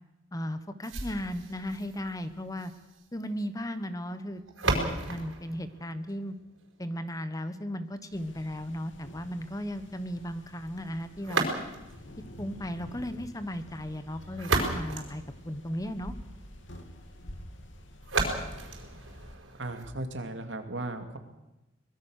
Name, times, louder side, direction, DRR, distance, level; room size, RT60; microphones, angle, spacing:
voice 1, 0.3-2.7 3.1-6.4 6.8-11.5 12.4-16.2, equal, 20° left, 11 dB, 1.2 m, -36 dB
sound 1, 0.8-6.8 11.2-12.1 14.1-16.0 18.0-20.0, right 3 dB, 90° right, 4.9 m, -34 dB
sound 2, 8.1-19.4, equal, 75° left, 2.7 m, -48 dB
voice 2, 19.6-21.2, right 2 dB, 70° right, 7 dB, 2.5 m, -36 dB
24.0 x 20.5 x 6.5 m, 0.98 s
head